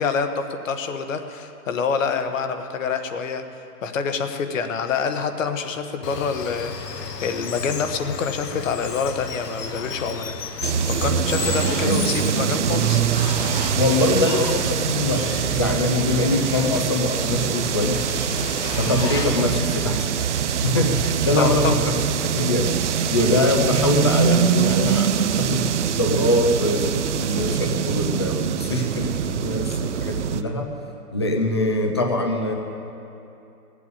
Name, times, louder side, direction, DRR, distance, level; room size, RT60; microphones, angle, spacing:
voice 1, 0.0-3.4 3.8-10.4 11.0-13.0 18.3-18.5 21.4-21.7, left 5 dB, 55° left, 8 dB, 1.2 m, -26 dB
Water, 6.0-19.6, left 5 dB, 85° left, 1.4 m, -33 dB
sound 1, 10.6-30.4, right 8 dB, 50° right, 0.6 m, -24 dB
voice 2, 13.7-18.0 18.7-20.1 20.6-21.9 22.3-22.7 23.1-25.7 26.0-30.7 31.1-32.5, left 1 dB, 20° left, 3 dB, 0.5 m, -23 dB
15.0 x 8.3 x 9.0 m, 2.8 s
hypercardioid pair, 155°, 47 cm